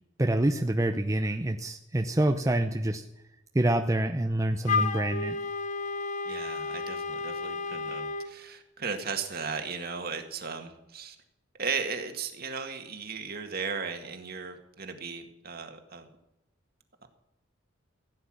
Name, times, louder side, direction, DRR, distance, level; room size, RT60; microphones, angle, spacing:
voice 1, 0.2-3.0 3.5-5.4, right 1 dB, 15° right, 5 dB, 0.7 m, -26 dB
Wind instrument woodwind instrument, 4.7-8.3, left 4 dB, 40° left, 1.0 m, -32 dB
voice 2, 6.3-11.2 11.6-16.1, right 5 dB, 50° right, 6 dB, 1.9 m, -36 dB
16.0 x 9.7 x 6.3 m, 0.88 s
head